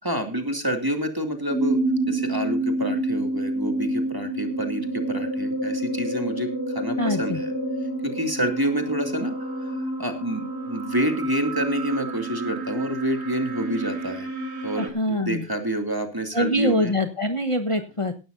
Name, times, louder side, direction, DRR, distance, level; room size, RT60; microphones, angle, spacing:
voice 1, 0.0-1.8 2.1-7.5 8.0-14.3 14.6-16.9, right 1 dB, 20° right, 5 dB, 2.4 m, -28 dB
sound 1, 1.5-14.9, right 1 dB, 70° right, 3.0 m, -28 dB
voice 2, 7.0-7.4 14.8-15.5 16.3-18.1, equal, 30° left, 4 dB, 1.3 m, -24 dB
17.5 x 12.5 x 2.7 m, 0.31 s
omnidirectional pair, 1.2 m